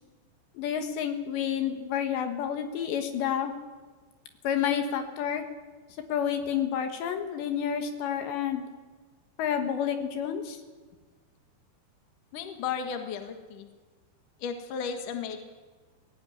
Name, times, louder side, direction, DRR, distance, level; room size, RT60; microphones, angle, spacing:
voice 1, 0.6-3.5 4.4-5.4 6.1-8.6 9.4-10.6, left 8 dB, 75° left, 6 dB, 3.7 m, -29 dB
voice 2, 12.3-13.7 14.4-15.4, left 6 dB, 55° left, 6 dB, 2.9 m, -34 dB
18.0 x 17.5 x 9.6 m, 1.4 s
omnidirectional pair, 5.3 m